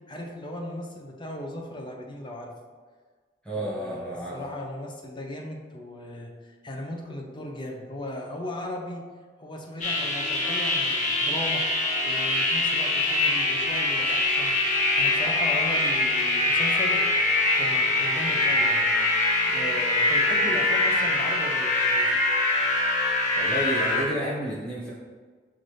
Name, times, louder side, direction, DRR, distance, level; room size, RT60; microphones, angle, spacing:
voice 1, 0.1-2.5 3.5-9.0 9.4-11.6 12.0-14.5 14.9-17.0 17.5-22.2, left 1 dB, 30° left, 1 dB, 0.6 m, -37 dB
voice 2, 3.4-4.4 23.3-24.9, right 1 dB, 5° left, -7 dB, 1.3 m, -31 dB
sound 1, 9.8-24.0, left 2 dB, 45° left, 0.9 m, -24 dB
5.8 x 2.6 x 3.2 m, 1.5 s
head